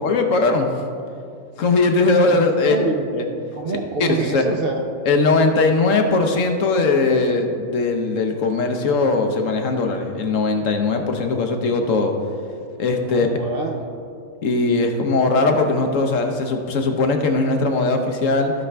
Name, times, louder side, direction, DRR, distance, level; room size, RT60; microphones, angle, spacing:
voice 1, 0.0-0.7 1.6-2.8 3.1-3.2 4.0-4.4 5.0-12.1 12.8-13.3 14.4-18.5, left 3 dB, 65° left, 4 dB, 1.1 m, -19 dB
voice 2, 2.3-3.1 3.4-4.9 13.1-13.8, right 3 dB, 50° right, 1 dB, 0.7 m, -27 dB
15.0 x 5.3 x 3.4 m, 2.4 s
omnidirectional pair, 1.5 m